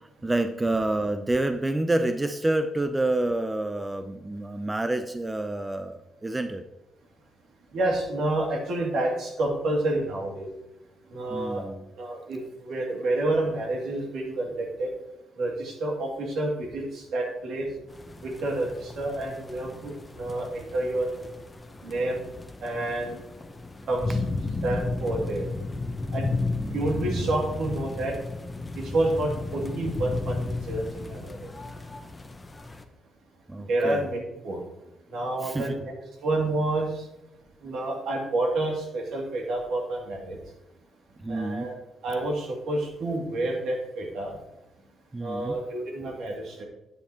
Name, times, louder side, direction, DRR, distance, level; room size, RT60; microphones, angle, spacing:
voice 1, 0.2-6.6 11.3-11.8 26.6-26.8 33.5-34.0 35.4-35.8 41.2-41.7 45.1-45.6, right 2 dB, 15° right, 9 dB, 0.5 m, -28 dB
voice 2, 7.7-10.5 11.1-11.6 12.0-14.9 15.4-17.7 18.2-21.2 21.8-22.2 22.6-23.2 23.9-24.2 24.6-25.5 26.1-26.3 26.7-28.1 28.9-31.4 33.7-34.6 35.1-35.9 36.2-37.0 37.6-40.4 41.3-41.7 42.0-44.4 45.2-46.6, right 2 dB, 75° right, 0 dB, 2.4 m, -29 dB
sound 1, 17.9-32.8, left 3 dB, 20° left, 0.8 m, -34 dB
9.9 x 8.0 x 2.9 m, 0.94 s
cardioid pair, 90°, 0 cm